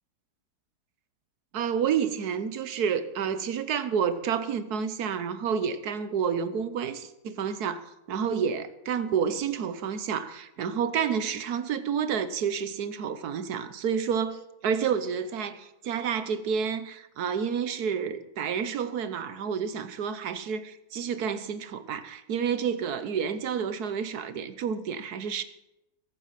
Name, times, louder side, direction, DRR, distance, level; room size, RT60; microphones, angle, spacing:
voice 1, 1.5-25.4, right 7 dB, 70° right, 1.4 m, -29 dB
22.0 x 8.6 x 5.8 m
omnidirectional pair, 1.7 m